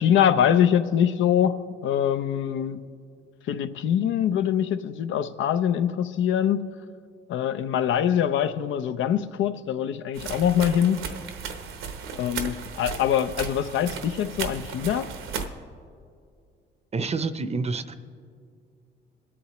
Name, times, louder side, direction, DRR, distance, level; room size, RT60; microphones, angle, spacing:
voice 1, 0.0-2.8 3.5-6.8 7.3-11.1 12.2-15.1, left 9 dB, 75° left, 11 dB, 0.6 m, -24 dB
sound 1, 10.1-15.5, right 6 dB, 85° right, 0.9 m, -35 dB
voice 2, 16.9-17.9, right 4 dB, 35° right, 11 dB, 0.6 m, -28 dB
22.5 x 8.6 x 3.0 m, 2.3 s
cardioid pair, 90°, 20 cm